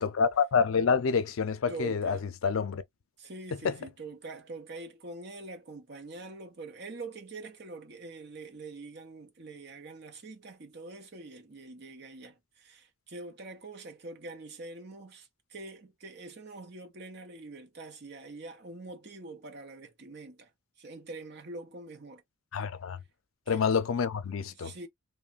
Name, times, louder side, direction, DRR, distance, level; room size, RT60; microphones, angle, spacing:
voice 1, 0.0-2.2 2.4-2.8 3.6-3.8 22.5-23.0 23.5-24.7, left 6 dB, 80° left, 0.5 m, -27 dB
voice 2, 1.7-2.3 3.2-20.5 20.8-22.2 23.5-23.7 24.5-24.9, right 3 dB, 55° right, 0.6 m, -44 dB
3.0 x 2.1 x 2.4 m
head